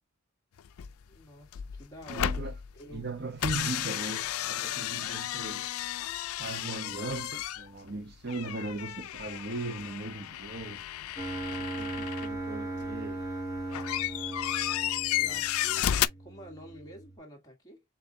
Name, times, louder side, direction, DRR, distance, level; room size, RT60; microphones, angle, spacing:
sound 1, 0.6-1.2 1.5-3.1 3.4-12.4 12.8-16.1, left 12 dB, 85° left, 0.3 m, -33 dB
voice 1, 1.0-2.4 2.7-3.1 15.2-17.8, equal, 15° left, 1.6 m, -49 dB
voice 2, 2.1-2.6 2.9-5.7 6.4-10.8 11.6-13.2, right 2 dB, 50° right, 0.7 m, -38 dB
sound 2, 11.2-17.2, right 2 dB, 15° right, 1.0 m, -38 dB
7.0 x 2.4 x 2.7 m
head